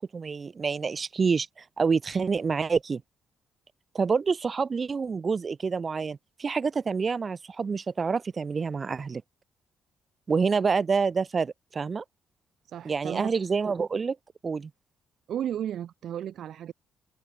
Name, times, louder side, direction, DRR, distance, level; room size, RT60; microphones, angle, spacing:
voice 1, 0.0-3.0 3.9-9.2 10.3-12.0 12.8-14.2 14.4-14.7, right 5 dB, 35° right, 0.4 m, -27 dB
voice 2, 12.7-13.3 15.3-16.7, right 10 dB, 70° right, 1.3 m, -34 dB
cardioid pair, 90°, 0 cm